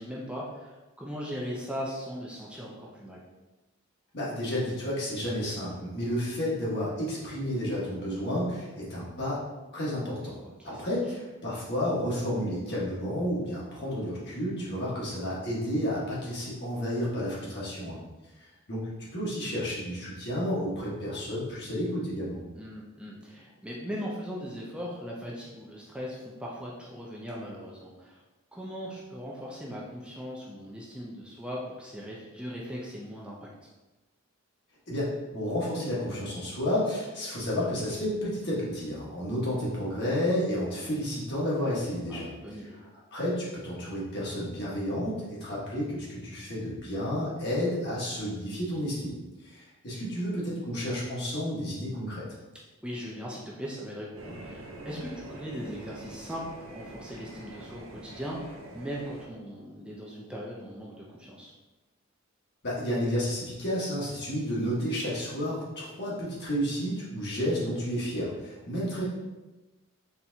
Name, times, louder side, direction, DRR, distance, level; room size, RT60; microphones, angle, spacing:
voice 1, 0.0-3.2 10.4-10.8 22.5-28.2 28.5-33.5 42.1-42.8 52.8-61.5, equal, 5° right, -4 dB, 0.5 m, -39 dB
voice 2, 4.1-9.4 9.7-10.4 10.6-18.0 18.4-22.4 34.9-42.3 43.1-49.2 49.4-52.2 62.6-69.0, equal, 55° left, -6 dB, 1.5 m, -31 dB
sound 1, 54.2-59.3, right 1 dB, 80° right, 0.8 m, -45 dB
4.2 x 3.5 x 2.8 m, 1.1 s
head